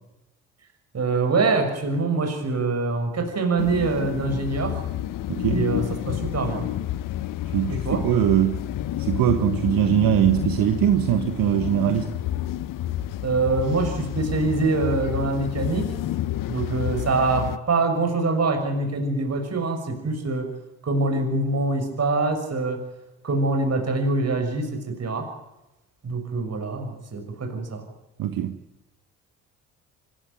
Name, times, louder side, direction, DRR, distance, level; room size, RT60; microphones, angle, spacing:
voice 1, 0.9-4.9 5.5-6.7 7.7-8.0 13.2-15.9 16.5-20.5 20.8-22.8 23.2-25.3 26.0-27.8, right 3 dB, 40° right, 5 dB, 6.4 m, -24 dB
sound 1, 3.6-17.6, left 13 dB, 55° left, 1.1 m, -30 dB
voice 2, 5.3-5.6 7.5-8.6 9.0-12.1 28.2-28.6, right 12 dB, 60° right, 9 dB, 1.5 m, -21 dB
25.0 x 15.5 x 9.1 m, 0.97 s
hypercardioid pair, 50°, 38 cm